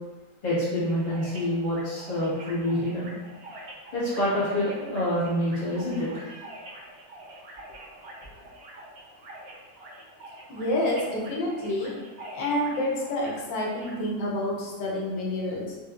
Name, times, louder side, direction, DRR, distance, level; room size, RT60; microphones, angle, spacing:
voice 1, 0.4-3.1 3.9-6.5 8.4-8.5, equal, 30° left, -9 dB, 1.2 m, -27 dB
sound 1, 0.8-13.9, right 1 dB, 80° right, 0.5 m, -45 dB
voice 2, 10.5-11.9 12.3-15.8, left 1 dB, 85° left, -3 dB, 1.4 m, -28 dB
4.5 x 2.4 x 2.4 m, 1.2 s
omnidirectional pair, 1.9 m